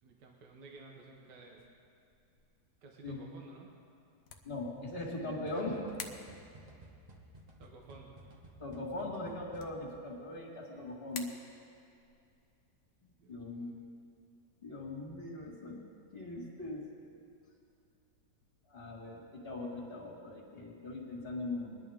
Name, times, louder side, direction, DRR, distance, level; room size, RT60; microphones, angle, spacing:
voice 1, 0.0-1.6 2.8-3.7 7.6-8.2 13.2-13.9, right 3 dB, 80° right, 0 dB, 1.8 m, -54 dB
sound 1, 1.6-15.7, left 6 dB, 65° left, 1.3 m, -55 dB
voice 2, 4.4-5.8 8.6-11.3 13.0-13.7 14.6-15.8 16.1-16.8 18.7-21.8, left 2 dB, 35° left, -3 dB, 2.3 m, -40 dB
sound 2, 5.5-10.1, right 1 dB, 30° right, 1.0 m, -55 dB
21.5 x 11.0 x 3.6 m, 2.5 s
omnidirectional pair, 1.9 m